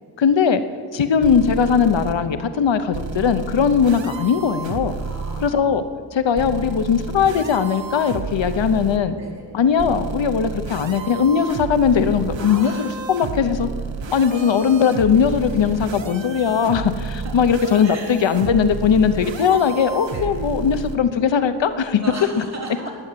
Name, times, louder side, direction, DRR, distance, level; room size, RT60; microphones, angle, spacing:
voice 1, 0.2-0.6 0.9-4.9 5.4-5.8 6.1-9.2 9.5-13.7 14.1-22.0, left 7 dB, 75° left, 11 dB, 0.9 m, -19 dB
sound 1, 1.2-2.1 2.9-5.5 6.4-9.0 9.8-21.0, right 5 dB, 75° right, 1.2 m, -31 dB
voice 2, 5.0-5.7 9.2-9.4 12.4-13.0 14.1-14.2 17.1-17.3 17.8-18.1 20.1-20.3 22.0-22.9, right 1 dB, 35° right, -3 dB, 4.4 m, -36 dB
19.0 x 9.3 x 7.6 m, 2.1 s
wide cardioid pair, 90°, 45 cm